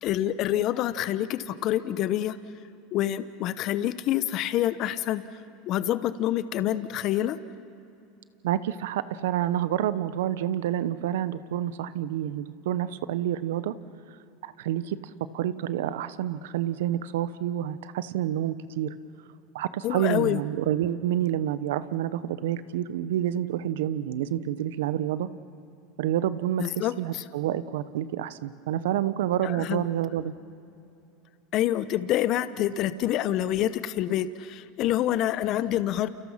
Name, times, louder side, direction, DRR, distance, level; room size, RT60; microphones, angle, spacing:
voice 1, 0.0-2.4 2.9-5.3 5.7-7.4 19.8-20.4 26.6-27.2 29.4-29.8 31.5-36.1, left 12 dB, 50° left, 13 dB, 0.9 m, -27 dB
voice 2, 8.4-13.7 14.4-15.0 15.3-18.9 19.5-25.3 26.0-30.3, right 11 dB, 75° right, 15 dB, 1.0 m, -28 dB
29.5 x 29.0 x 5.8 m, 2.7 s
hypercardioid pair, 95°, 0 cm